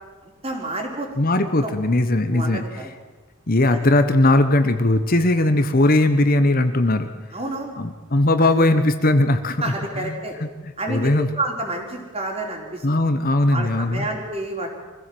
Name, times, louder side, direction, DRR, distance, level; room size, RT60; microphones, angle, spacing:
voice 1, 0.2-1.1 1.6-1.7 2.3-2.9 3.7-3.9 7.3-7.8 8.4-8.7 9.6-10.3 10.8-11.0 11.3-12.9 13.5-14.7, right 2 dB, 30° right, 1 dB, 4.2 m, -29 dB
voice 2, 1.2-2.9 3.5-7.1 7.8-9.6 10.0-11.3 12.8-14.1, left 2 dB, 45° left, 9 dB, 1.1 m, -19 dB
24.0 x 15.5 x 7.8 m, 1.3 s
head